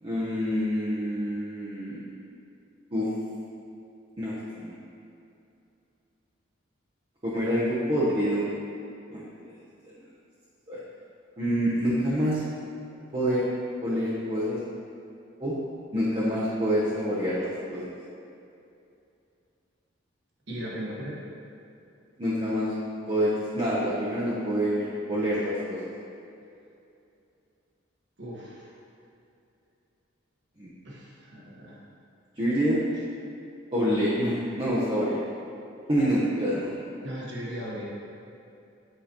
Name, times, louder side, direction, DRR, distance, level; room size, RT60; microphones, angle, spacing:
voice 1, 0.0-2.0 2.9-3.1 4.2-4.7 7.2-8.5 9.1-9.3 10.7-10.8 11.4-12.4 13.1-13.5 13.8-14.6 15.4-15.6 15.9-17.9 22.2-22.7 23.1-25.8 30.6-30.7 32.4-32.8 33.7-35.2 35.9-36.8, equal, 25° right, -9 dB, 0.8 m, -27 dB
voice 2, 20.5-21.2 28.2-28.7 30.8-31.8 37.0-37.8, equal, 60° right, -5 dB, 1.3 m, -37 dB
7.9 x 4.8 x 2.9 m, 2.6 s
head